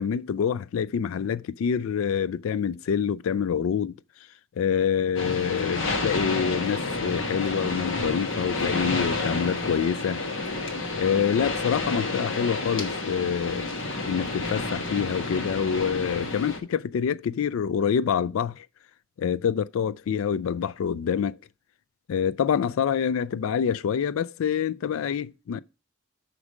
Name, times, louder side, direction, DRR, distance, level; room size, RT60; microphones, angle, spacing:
voice 1, 0.0-4.0 4.6-10.2 11.0-13.7 14.1-18.7 19.2-21.4 22.1-25.6, left 7 dB, 90° left, 0.3 m, -26 dB
sound 1, 5.2-16.6, left 3 dB, 65° left, 1.3 m, -30 dB
6.1 x 5.0 x 6.4 m
head